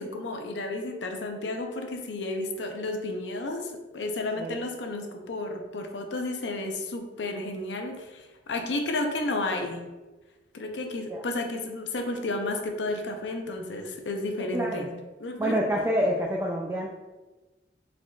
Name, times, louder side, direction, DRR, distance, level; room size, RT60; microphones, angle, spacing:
voice 1, 0.0-9.9 10.5-15.6, left 2 dB, 80° left, 4 dB, 0.6 m, -32 dB
voice 2, 14.4-14.9 15.4-16.9, equal, 15° right, -1 dB, 0.3 m, -27 dB
5.0 x 3.5 x 2.4 m, 1.2 s
head